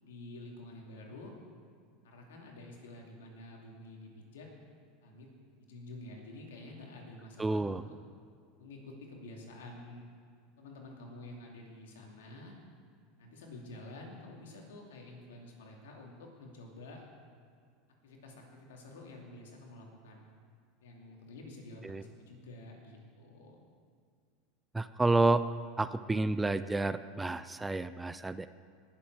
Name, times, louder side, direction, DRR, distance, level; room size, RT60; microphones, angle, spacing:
voice 1, 0.0-1.3 2.0-4.5 5.0-5.3 5.6-7.8 8.6-10.0 10.6-12.5 13.2-17.0 18.0-20.3 20.8-23.6, left 2 dB, 85° left, 0 dB, 2.6 m, -49 dB
voice 2, 7.4-7.8 21.8-22.0 24.7-25.4 25.8-28.5, right 2 dB, 10° right, 13 dB, 0.4 m, -30 dB
19.0 x 7.5 x 4.8 m, 2.2 s
supercardioid pair, 105°, 0 cm